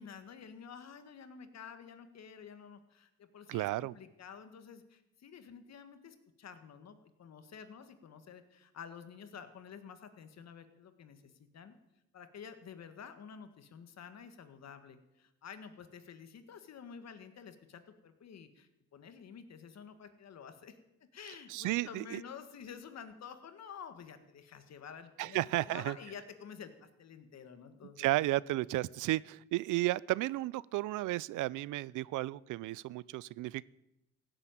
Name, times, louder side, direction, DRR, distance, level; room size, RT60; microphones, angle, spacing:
voice 1, 0.0-11.7 12.1-20.8 21.1-28.1, left 7 dB, 60° left, 9 dB, 1.8 m, -50 dB
voice 2, 3.5-3.9 21.5-22.2 25.2-25.9 28.0-33.6, right 17 dB, 80° right, 22 dB, 0.5 m, -33 dB
16.0 x 7.8 x 9.2 m, 0.91 s
cardioid pair, 90°, 30 cm